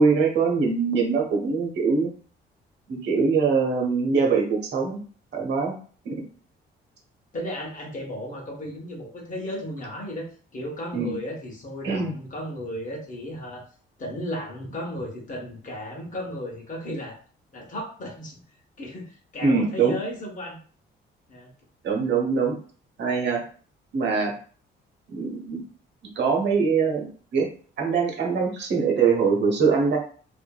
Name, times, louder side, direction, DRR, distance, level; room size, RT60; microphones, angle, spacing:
voice 1, 0.0-2.1 2.9-5.0 5.3-5.8 6.0-6.1 10.9-11.1 11.8-12.1 19.4-20.0 21.8-22.6 23.0-23.4 23.9-24.3 25.1-25.6 26.2-27.5 27.8-30.0, right 5 dB, 60° right, 1 dB, 0.9 m, -23 dB
voice 2, 7.3-13.7 14.0-17.2 17.5-18.4 18.8-20.6 21.3-21.5, left 1 dB, 40° left, 1 dB, 0.9 m, -34 dB
2.6 x 2.5 x 2.2 m, 0.43 s
cardioid pair, 90°, 20 cm